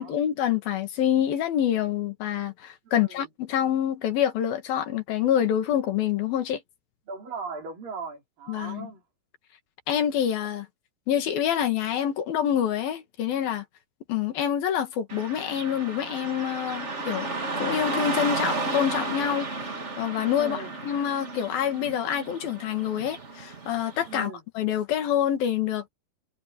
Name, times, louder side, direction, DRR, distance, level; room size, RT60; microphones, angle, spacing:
voice 1, 0.0-6.6 8.5-8.9 9.9-10.7 11.1-13.7 14.1-17.3 17.6-19.5 20.0-20.6 20.8-25.9, left 10 dB, 65° left, 3.6 m, -26 dB
voice 2, 2.8-3.3 7.1-9.0 20.4-20.7 24.1-24.4, right 5 dB, 60° right, 6.4 m, -38 dB
Car passing by / Traffic noise roadway noise, 15.1-24.1, right 3 dB, 30° right, 1.4 m, -33 dB
omnidirectional pair, 4.6 m